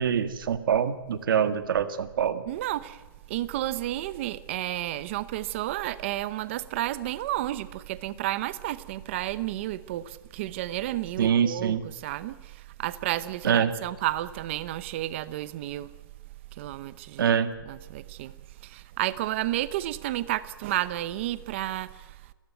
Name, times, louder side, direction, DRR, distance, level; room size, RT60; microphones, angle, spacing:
voice 1, 0.0-2.4 11.2-11.8 13.4-13.7 17.2-17.5, right 8 dB, 65° right, 1.8 m, -24 dB
voice 2, 2.5-3.0 3.3-15.9 16.5-17.3 17.6-18.3 18.6-22.2, right 14 dB, 35° right, 0.8 m, -31 dB
29.0 x 15.0 x 9.1 m
hypercardioid pair, 170°, 12 cm